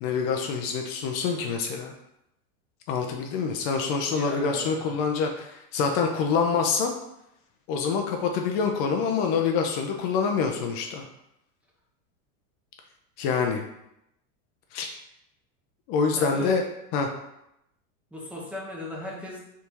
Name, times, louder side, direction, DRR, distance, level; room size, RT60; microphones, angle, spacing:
voice 1, 0.0-1.9 2.9-6.9 7.7-11.0 13.2-13.6 14.7-14.9 15.9-16.6 16.9-17.1, left 5 dB, 45° left, 3 dB, 0.5 m, -26 dB
voice 2, 4.1-5.0 16.1-16.6 18.1-19.4, left 2 dB, 5° right, -4 dB, 0.6 m, -36 dB
3.5 x 2.6 x 4.5 m, 0.83 s
supercardioid pair, 135°, 40 cm